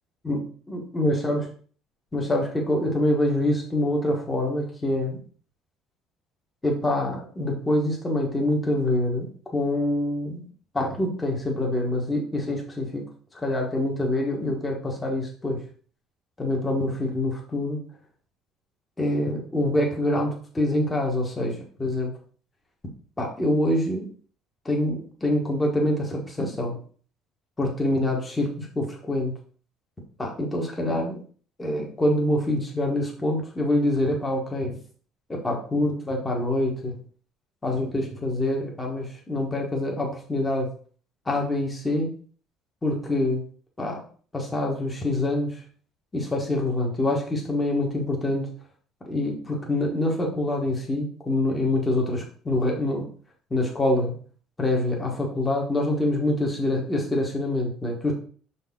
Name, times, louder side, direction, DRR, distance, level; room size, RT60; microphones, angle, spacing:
voice 1, 0.2-1.4 2.1-5.2 6.6-10.5 10.7-13.0 13.3-15.6 16.4-17.8 19.0-22.1 23.2-24.1 24.6-26.8 27.6-29.3 30.2-31.2 31.6-34.8 35.3-37.0 37.6-40.7 41.3-42.1 42.8-43.4 43.8-44.0 44.3-45.6 46.1-48.5 49.1-53.1 53.5-54.1 54.6-58.1, left 1 dB, 10° left, -1 dB, 1.2 m, -25 dB
6.5 x 4.1 x 3.6 m, 0.43 s
cardioid pair, 175°, 0 cm